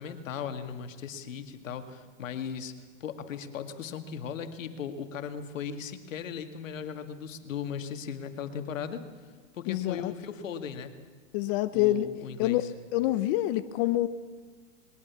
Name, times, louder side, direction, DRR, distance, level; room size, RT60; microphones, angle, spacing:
voice 1, 0.0-2.7 3.0-9.1 9.5-10.9 11.7-12.7, left 7 dB, 85° left, 8 dB, 2.2 m, -37 dB
voice 2, 9.7-10.1 11.3-12.1 12.4-12.6 12.9-14.1, left 15 dB, 45° left, 12 dB, 0.8 m, -26 dB
21.5 x 19.0 x 7.2 m, 1.5 s
hypercardioid pair, 135°, 38 cm